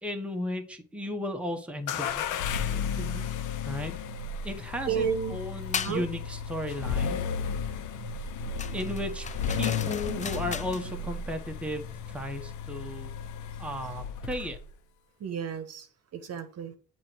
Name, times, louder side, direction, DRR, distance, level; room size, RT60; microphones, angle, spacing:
voice 1, 0.0-2.3 3.7-4.0 4.4-7.3 8.7-13.1 13.6-14.6, left 1 dB, 5° right, 0.9 m, -35 dB
sound 1, 1.9-14.7, left 6 dB, 85° left, 0.6 m, -34 dB
voice 2, 2.9-3.3 4.9-5.4 5.8-6.0 15.2-15.9 16.1-16.7, right 7 dB, 55° right, 0.9 m, -32 dB
sound 2, 5.7-6.0 8.6-10.9, left 7 dB, 25° left, 0.3 m, -36 dB
7.3 x 3.0 x 4.4 m
cardioid pair, 90°, 30 cm